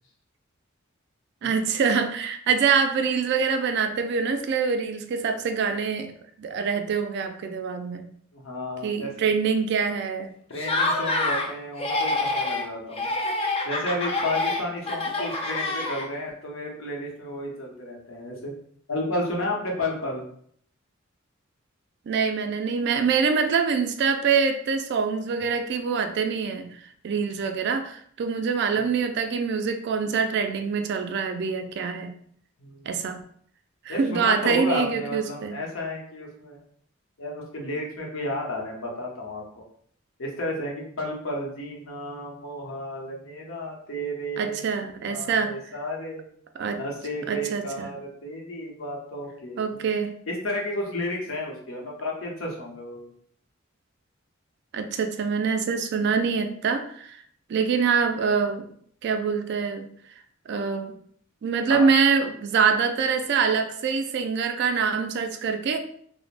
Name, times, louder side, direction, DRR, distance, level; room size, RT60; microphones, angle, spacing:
voice 1, 1.4-6.1 6.4-8.1 8.8-10.3 22.1-26.8 27.0-32.1 32.9-33.2 33.9-35.6 44.4-45.6 46.6-46.8 47.3-47.9 49.6-50.1 54.7-57.2 57.5-58.7 59.0-59.9 60.5-61.0 61.4-65.8, right 5 dB, 60° right, 7 dB, 0.3 m, -25 dB
voice 2, 8.3-9.3 10.5-13.1 13.6-18.5 18.9-20.2 28.7-28.9 32.6-32.9 33.9-36.6 37.2-39.6 40.2-44.6 45.0-46.2 46.8-49.8 50.3-53.1 61.7-61.9, left 1 dB, 80° left, -1 dB, 0.8 m, -32 dB
Laughter, 10.6-11.5 11.8-12.7 13.0-16.3, left 2 dB, 30° left, 0.4 m, -27 dB
3.2 x 2.0 x 2.4 m, 0.62 s
head